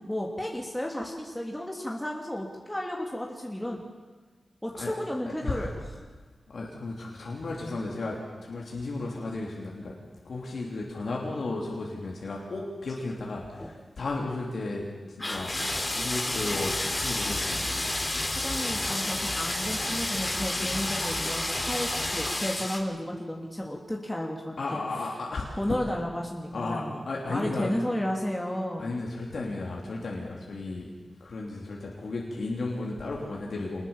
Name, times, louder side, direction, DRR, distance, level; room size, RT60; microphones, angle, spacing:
voice 1, 0.0-3.9 4.6-5.7 18.4-24.8 25.6-29.0, left 1 dB, 10° left, -1 dB, 3.0 m, -33 dB
voice 2, 5.3-5.7 6.5-9.9 10.2-14.8 15.2-15.5 15.9-17.7 24.6-25.8 26.5-27.7 28.8-30.9 31.2-33.9, left 3 dB, 70° left, -2 dB, 3.3 m, -34 dB
sound 1, 12.9-13.1 13.4-13.7 15.2-22.8, left 1 dB, 25° left, 3.3 m, -30 dB
25.5 x 20.5 x 7.3 m, 1.4 s
wide cardioid pair, 70°, 0 cm